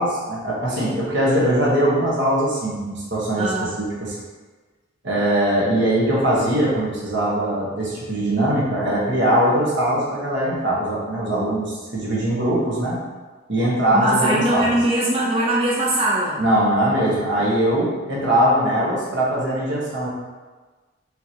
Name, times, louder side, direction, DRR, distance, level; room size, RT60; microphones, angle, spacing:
voice 1, 0.0-4.2 5.0-13.0 13.5-14.7 16.4-20.1, right 1 dB, 65° right, -5 dB, 1.2 m, -21 dB
voice 2, 3.4-3.7 13.9-16.4, right 1 dB, 30° right, -5 dB, 0.5 m, -21 dB
4.5 x 3.8 x 2.8 m, 1.3 s
head